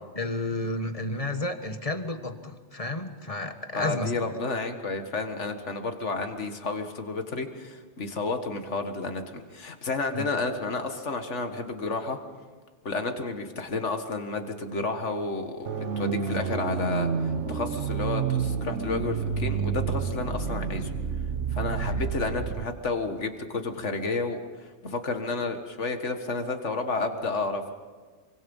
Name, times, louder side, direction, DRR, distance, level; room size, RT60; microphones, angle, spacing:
voice 1, 0.1-4.1 10.1-10.2 21.7-22.0, left 2 dB, 30° left, 8 dB, 1.5 m, -32 dB
voice 2, 3.8-12.2 12.8-20.9 21.5-27.7, left 3 dB, 85° left, 6 dB, 2.1 m, -31 dB
sound 1, 15.7-22.7, right 6 dB, 90° right, 1.5 m, -29 dB
27.0 x 24.5 x 5.5 m, 1.4 s
omnidirectional pair, 1.2 m